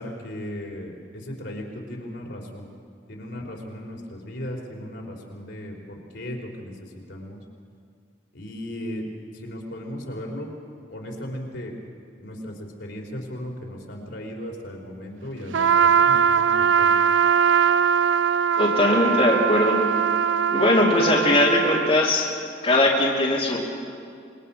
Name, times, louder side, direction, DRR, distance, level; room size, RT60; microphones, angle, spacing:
voice 1, 0.0-2.7 3.1-7.4 8.3-9.1 9.3-10.5 10.9-11.7 12.2-17.0, equal, 70° left, 0 dB, 3.4 m, -36 dB
Trumpet, 15.5-22.0, right 7 dB, 80° right, 0.5 m, -21 dB
voice 2, 18.6-19.8 20.5-22.3 22.6-23.6, left 2 dB, 35° left, -4 dB, 2.8 m, -20 dB
26.5 x 21.5 x 5.5 m, 2.3 s
head